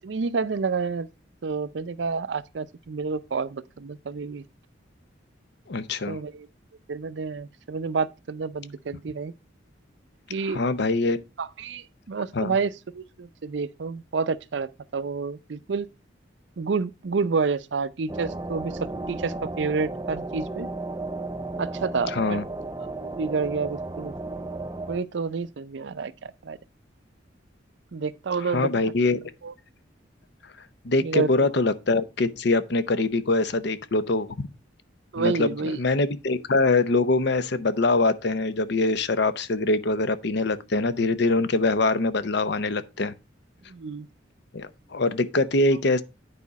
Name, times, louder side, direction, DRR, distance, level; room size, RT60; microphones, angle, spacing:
voice 1, 0.0-1.1 1.4-4.4 6.1-6.5 6.9-9.3 10.3-10.6 11.4-15.9 16.6-18.8 19.1-20.7 21.6-22.4 22.8-24.2 24.9-26.6 27.9-28.7 29.4-29.5 31.0-31.3 35.1-35.8 43.7-44.1, right 4 dB, 65° right, 0.5 m, -29 dB
voice 2, 5.7-6.2 10.5-11.2 12.3-12.5 22.1-22.4 28.5-29.2 30.8-34.5 35.2-43.1 44.5-46.0, left 3 dB, 60° left, 0.7 m, -23 dB
sound 1, 18.1-25.0, right 2 dB, 20° right, 0.5 m, -34 dB
9.6 x 5.0 x 4.0 m
head